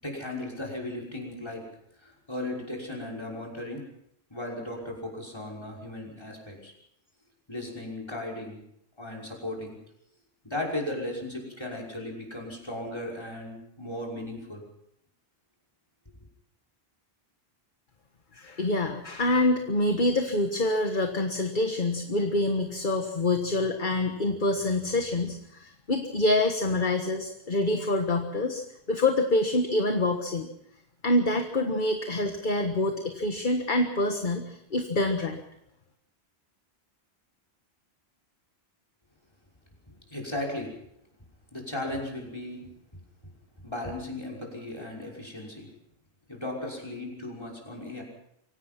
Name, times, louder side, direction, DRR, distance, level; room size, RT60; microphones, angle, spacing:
voice 1, 0.0-1.7 2.0-3.9 4.3-6.7 7.5-8.6 9.0-9.8 10.4-14.6 40.1-40.7 41.5-42.7 43.6-45.7 46.3-48.0, left 1 dB, 25° left, -1 dB, 5.9 m, -36 dB
voice 2, 18.3-28.6 28.9-30.5 31.0-35.4, left 2 dB, 50° left, 5 dB, 1.6 m, -26 dB
25.5 x 17.5 x 6.0 m, 0.78 s
omnidirectional pair, 1.1 m